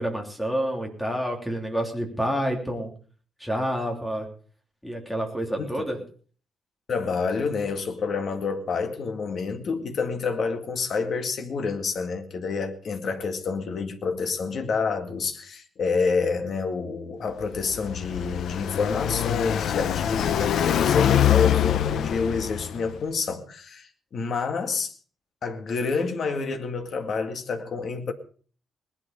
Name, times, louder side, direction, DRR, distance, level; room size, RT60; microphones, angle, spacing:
voice 1, 0.0-2.9 3.4-4.3 4.8-6.0, equal, ahead, 3.2 m, -28 dB
voice 2, 6.9-24.9 25.4-28.1, left 4 dB, 45° left, 2.1 m, -28 dB
Car passing by, 17.4-23.0, left 10 dB, 65° left, 0.8 m, -24 dB
19.5 x 12.0 x 5.3 m
cardioid pair, 175°, 0 cm